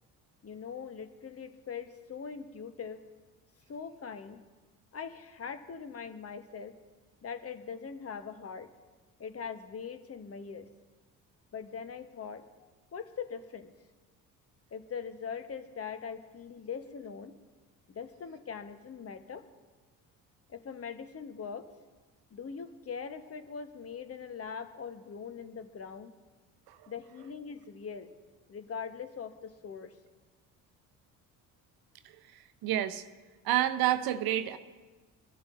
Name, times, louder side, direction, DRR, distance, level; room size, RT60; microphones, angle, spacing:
voice 1, 0.4-3.0 3.7-4.4 4.9-6.8 7.2-8.7 9.2-10.7 11.5-12.4 12.9-13.7 14.7-17.3 17.9-19.4 20.5-21.6 22.3-26.1 26.9-28.1 28.5-29.9, left 6 dB, 35° left, 10 dB, 1.1 m, -41 dB
voice 2, 32.6-33.0 33.4-34.6, right 13 dB, 55° right, 10 dB, 0.8 m, -28 dB
22.5 x 12.0 x 2.6 m, 1.3 s
hypercardioid pair, 55°, 43 cm